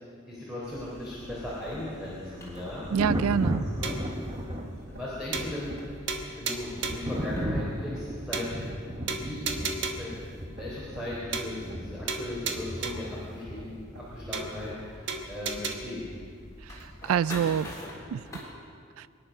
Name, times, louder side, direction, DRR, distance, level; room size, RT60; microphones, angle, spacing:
voice 1, 0.3-2.9 3.8-4.0 4.9-5.8 6.4-8.5 8.9-9.6 10.0-16.0, left 1 dB, 5° right, -8 dB, 3.5 m, -38 dB
sound 1, 0.6-18.4, left 1 dB, 15° left, 3.4 m, -47 dB
Thunder, 1.5-15.2 16.8-17.0, equal, 25° right, 1.1 m, -36 dB
voice 2, 2.9-3.7 16.6-17.7 18.1-18.3 19.0-19.1, right 8 dB, 85° right, 18 dB, 0.3 m, -27 dB
sound 2, 3.8-4.2 4.6-4.7 4.9-5.0 5.3-5.8 6.1-7.1 7.6-7.7 7.9-8.0 8.3-8.8 9.1-10.2 10.6-10.7 10.9-11.1 11.3-11.8 12.1-13.1 13.6-13.7 13.9-14.0 14.3-14.8 15.1-15.7, right 4 dB, 55° right, 1.3 m, -34 dB
23.0 x 10.5 x 6.1 m, 2.1 s
head